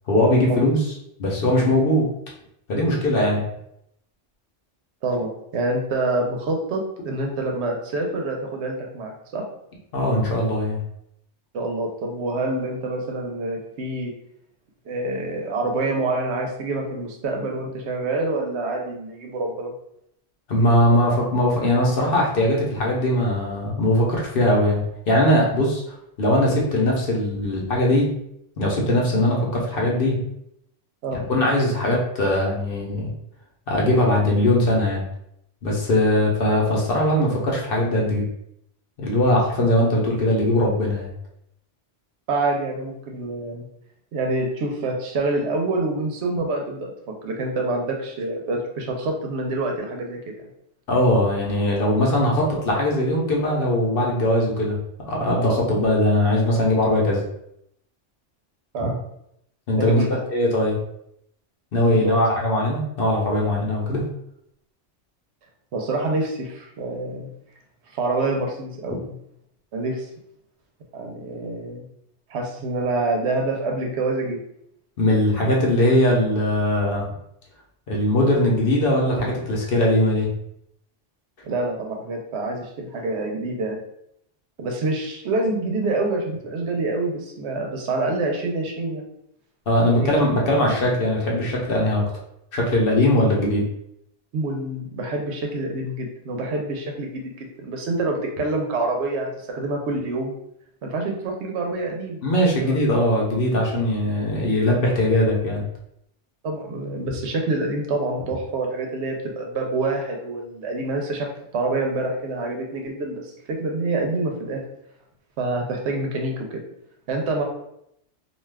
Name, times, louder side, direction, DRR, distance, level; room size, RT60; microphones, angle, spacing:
voice 1, 0.1-0.8 1.2-2.1 2.7-3.4 9.9-10.8 20.5-25.8 26.2-28.1 28.6-30.2 31.1-33.1 33.7-35.0 35.6-38.3 39.0-41.1 50.9-54.8 55.1-57.2 58.8-58.9 59.7-60.0 60.3-60.8 61.7-64.0 75.0-77.0 77.9-80.3 89.7-92.0 92.5-93.7 102.2-105.6, left 1 dB, 55° left, -2 dB, 0.8 m, -20 dB
voice 2, 5.0-9.4 11.5-14.1 14.9-19.7 31.0-31.2 42.3-43.7 44.1-46.9 47.2-50.2 58.7-59.0 59.8-60.2 61.8-62.2 65.7-67.3 67.9-69.1 69.7-70.1 70.9-71.8 72.3-74.4 81.4-83.8 84.6-89.1 89.8-90.2 94.3-100.3 100.8-102.2 102.6-102.8 106.4-114.6 115.4-116.6 117.1-117.4, right 2 dB, 75° right, 2 dB, 0.8 m, -26 dB
2.4 x 2.3 x 3.3 m, 0.76 s
omnidirectional pair, 1.2 m